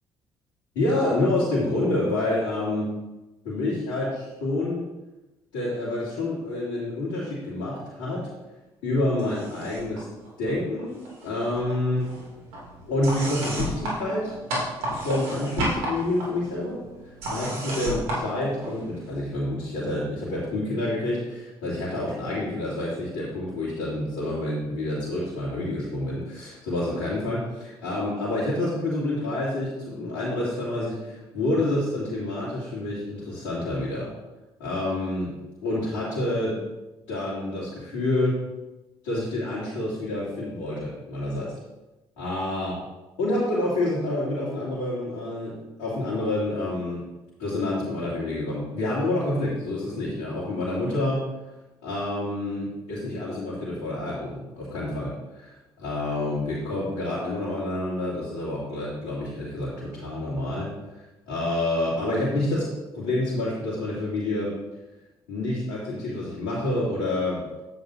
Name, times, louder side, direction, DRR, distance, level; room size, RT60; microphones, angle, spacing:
voice 1, 0.7-2.9 3.4-4.9 5.5-8.3 8.8-10.1 10.4-12.0 12.9-14.3 15.0-16.8 17.3-34.1 34.6-35.3 35.6-36.6 37.1-38.3 39.0-41.5 42.2-42.8 43.2-47.0 47.4-51.2 51.8-60.7 61.3-62.7 62.9-64.5 65.3-67.4, left 1 dB, 80° left, -10 dB, 2.6 m, -28 dB
sound 1, 9.2-10.0 10.2-11.3 11.5-19.1, right 1 dB, 80° right, 2.7 m, -33 dB
10.5 x 8.0 x 2.7 m, 1.0 s
hypercardioid pair, 50°, 12 cm